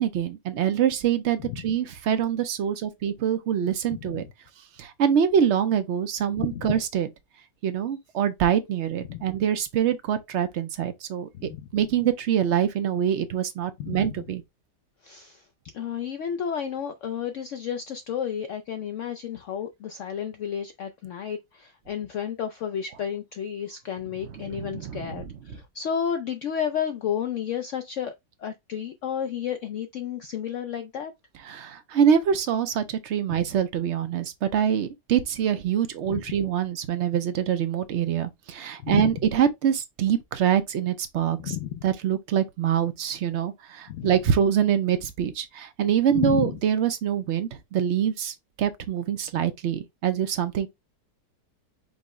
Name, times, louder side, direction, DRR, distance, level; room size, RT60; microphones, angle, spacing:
voice 1, 0.0-4.3 4.8-7.1 7.6-14.4 24.5-25.3 31.4-41.5 41.8-50.7, right 9 dB, 75° right, 0.6 m, -25 dB
voice 2, 6.4-6.7 9.1-9.2 11.3-11.6 13.8-14.1 15.0-15.4 15.7-28.1 28.4-31.1 36.1-36.2 38.8-39.2 41.4-41.8 43.9-44.1 46.1-46.6, left 8 dB, 85° left, 0.6 m, -31 dB
5.3 x 2.0 x 4.7 m
omnidirectional pair, 1.8 m